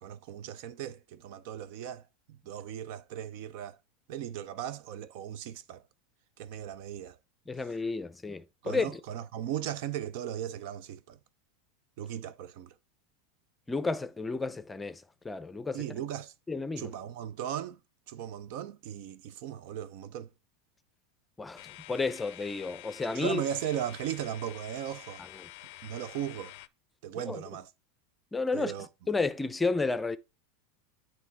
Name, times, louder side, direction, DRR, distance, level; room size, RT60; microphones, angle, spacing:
voice 1, 0.0-2.0 2.5-3.8 4.1-5.8 6.4-7.2 8.6-11.2 12.0-12.7 15.7-16.3 16.8-17.8 18.1-20.3 23.1-25.2 25.8-26.5 27.0-27.7 28.5-28.9, right 10 dB, 65° right, 0.6 m, -37 dB
voice 2, 7.5-9.0 13.7-15.8 16.5-16.9 21.4-23.4 27.2-27.4 28.3-28.7 29.1-30.2, left 3 dB, 15° left, 0.6 m, -32 dB
sound 1, 21.6-26.7, left 18 dB, 65° left, 0.4 m, -48 dB
8.1 x 3.1 x 4.6 m
hypercardioid pair, 110°, 0 cm